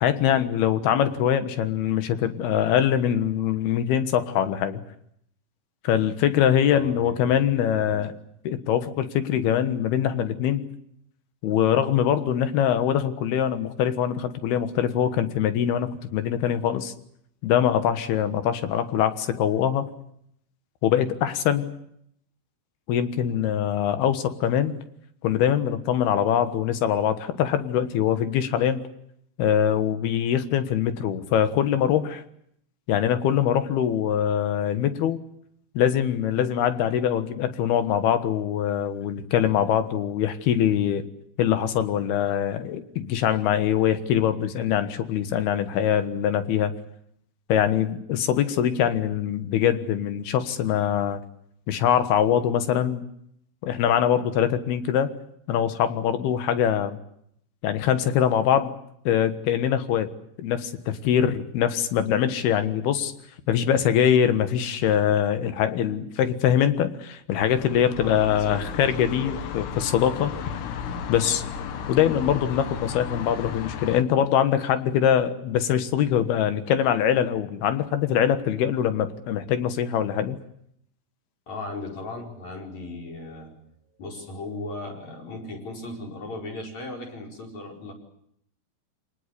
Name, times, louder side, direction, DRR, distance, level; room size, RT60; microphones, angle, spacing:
voice 1, 0.0-4.8 5.8-8.1 8.4-10.7 11.4-16.9 17.4-19.9 20.8-21.7 22.9-24.7 25.2-28.8 29.4-32.2 32.9-35.2 35.7-41.0 41.4-46.7 47.5-51.2 51.7-53.0 53.6-55.1 55.5-57.0 57.6-58.8 59.0-60.1 60.4-63.1 63.5-70.3 71.1-71.4 71.9-80.4, left 9 dB, 70° left, 10 dB, 3.3 m, -23 dB
voice 2, 6.7-7.4 7.7-8.1 68.0-69.5 70.3-70.4 81.5-83.6 84.0-87.9, left 2 dB, 40° left, 0 dB, 6.0 m, -37 dB
sound 1, 67.3-74.0, left 7 dB, 90° left, 3.6 m, -35 dB
26.5 x 19.0 x 8.4 m, 0.72 s
omnidirectional pair, 4.8 m